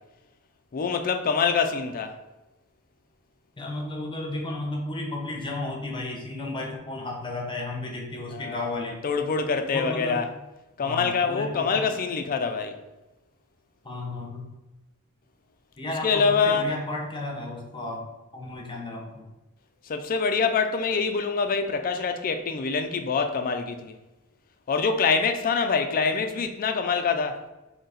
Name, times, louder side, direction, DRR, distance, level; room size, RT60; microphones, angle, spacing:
voice 1, 0.7-2.2 8.3-10.3 10.8-12.8 16.0-16.7 19.9-23.9 24.7-27.4, left 5 dB, 40° left, 0.4 m, -25 dB
voice 2, 3.6-9.0 9.7-10.2 10.8-11.9 13.8-14.5 15.8-18.1 18.3-19.2, left 2 dB, 20° left, 0.8 m, -33 dB
3.8 x 2.8 x 4.1 m
head